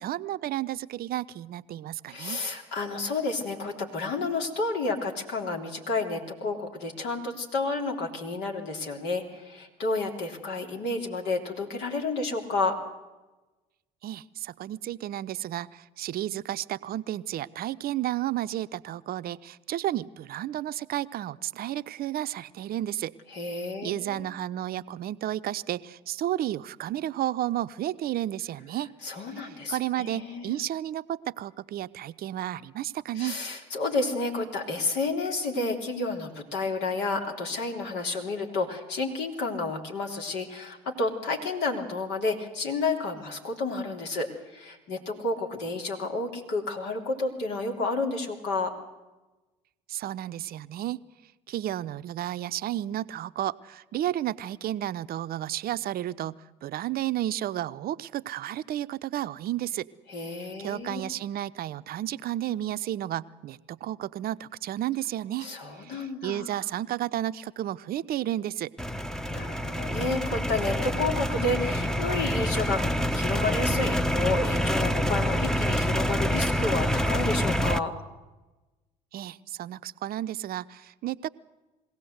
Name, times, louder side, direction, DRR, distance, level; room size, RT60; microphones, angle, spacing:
voice 1, 0.0-2.4 14.0-23.1 23.8-28.9 29.4-33.4 49.9-51.0 51.5-59.9 60.6-65.5 65.8-68.7 79.1-81.3, right 13 dB, 55° right, 14 dB, 0.7 m, -32 dB
voice 2, 2.1-12.8 23.3-24.3 29.0-30.5 33.1-48.7 60.1-61.1 65.4-66.7 69.3-72.8 73.1-77.9, left 3 dB, 65° left, 2 dB, 3.4 m, -30 dB
sound 1, 68.8-77.8, equal, 5° left, 0.9 m, -27 dB
22.0 x 17.0 x 8.0 m, 1.1 s
hypercardioid pair, 60°, 19 cm